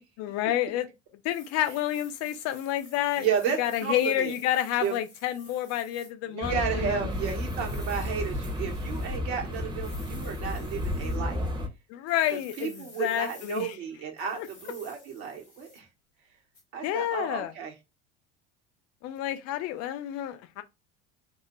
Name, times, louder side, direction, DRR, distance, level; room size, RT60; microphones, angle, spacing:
voice 1, 0.2-0.9 1.2-3.3 3.6-7.0 11.9-13.7 14.4-14.5 16.8-17.5 19.0-20.6, left 12 dB, 45° left, 0.5 m, -29 dB
sound 1, 1.2-6.1 7.1-9.2 9.7-11.2 12.1-13.7 14.2-15.9 16.5-16.6, left 2 dB, 85° left, 1.3 m, -52 dB
voice 2, 3.2-4.3 4.8-5.0 6.3-11.4 12.3-15.9 16.7-17.7, right 7 dB, 60° right, 1.2 m, -32 dB
sound 2, 6.4-11.7, left 1 dB, 15° right, 0.9 m, -32 dB
4.2 x 2.1 x 3.0 m
figure-of-eight pair, 65°, 36 cm